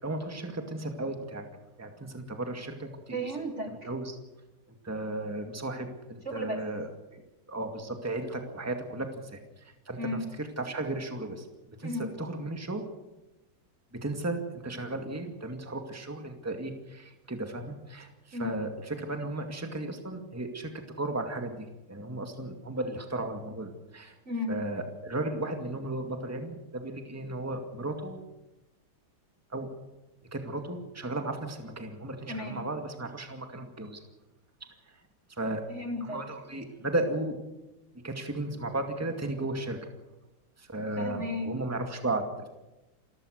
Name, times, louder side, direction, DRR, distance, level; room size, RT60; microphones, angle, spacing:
voice 1, 0.0-1.5 1.8-3.2 3.8-4.2 4.8-7.2 7.5-11.4 11.8-11.9 12.2-12.8 14.0-20.7 21.0-24.1 24.5-28.2 29.5-29.7 30.3-34.0 35.4-35.6 36.0-37.4 38.0-39.8 40.6-42.5, right 2 dB, 10° right, 5 dB, 2.0 m, -35 dB
voice 2, 3.1-3.9 6.3-6.6 10.0-10.2 11.8-12.1 18.3-18.6 24.3-24.5 32.3-32.6 35.7-36.2 41.0-41.5, left 1 dB, 35° right, 4 dB, 1.9 m, -34 dB
28.0 x 15.5 x 6.6 m, 1.0 s
omnidirectional pair, 2.3 m